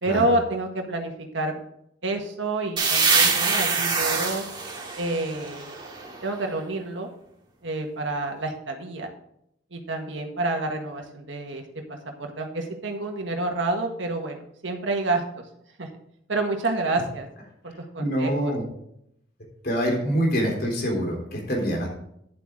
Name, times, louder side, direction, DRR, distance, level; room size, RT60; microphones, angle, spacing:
voice 1, 0.0-1.6 2.0-4.4 4.9-5.6 6.2-7.1 7.6-9.1 9.7-11.8 12.2-15.2 15.8-15.9 16.3-17.3 17.6-18.5, right 2 dB, 85° right, 3 dB, 1.7 m, -28 dB
sound 1, 2.8-6.4, right 4 dB, 25° right, 2.1 m, -24 dB
voice 2, 18.0-18.6 19.6-21.9, equal, 55° left, 0 dB, 3.7 m, -25 dB
10.5 x 7.9 x 3.8 m, 0.73 s
head